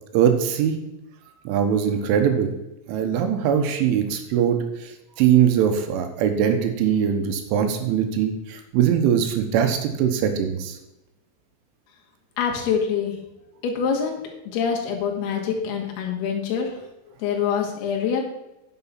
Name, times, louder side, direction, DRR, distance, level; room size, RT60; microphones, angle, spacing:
voice 1, 0.1-0.8 1.5-2.5 2.9-4.9 5.2-10.8, right 8 dB, 85° right, 6 dB, 3.5 m, -21 dB
voice 2, 12.4-13.1 13.6-16.7 17.2-18.2, left 7 dB, 65° left, 0 dB, 3.4 m, -25 dB
9.8 x 6.6 x 5.9 m, 0.91 s
omnidirectional pair, 5.5 m